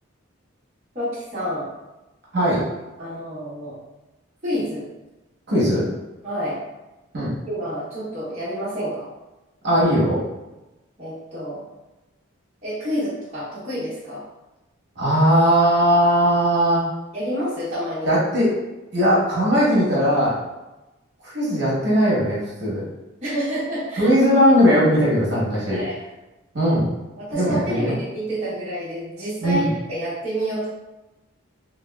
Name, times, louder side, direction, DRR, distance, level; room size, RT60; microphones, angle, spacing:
voice 1, 0.9-1.7 3.0-3.8 4.4-4.9 6.2-6.6 7.5-9.1 11.0-11.6 12.6-14.2 17.1-18.1 23.2-24.1 25.7-26.0 27.2-30.7, equal, 30° right, -11 dB, 0.8 m, -28 dB
voice 2, 2.3-2.6 5.5-5.8 7.1-7.3 9.6-10.2 15.0-16.8 18.0-18.5 18.9-20.4 21.2-22.9 24.0-25.8 26.5-26.9 27.3-27.9 29.4-29.7, equal, 55° right, -7 dB, 1.0 m, -18 dB
3.2 x 2.3 x 2.2 m, 1.0 s
head